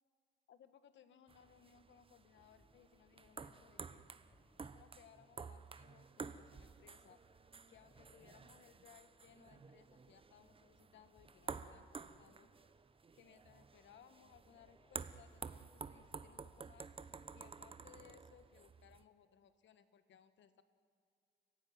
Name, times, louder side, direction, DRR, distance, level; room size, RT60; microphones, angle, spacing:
voice 1, 0.5-4.0 4.6-7.2 7.7-12.5 13.1-16.9 17.3-20.6, left 9 dB, 70° left, 11 dB, 1.5 m, -65 dB
sound 1, 1.3-19.0, right 5 dB, 25° right, 0.9 m, -52 dB
sound 2, 2.3-17.2, left 1 dB, 30° left, 4.4 m, -75 dB
29.5 x 15.5 x 9.5 m, 2.2 s
cardioid pair, 90°, 20 cm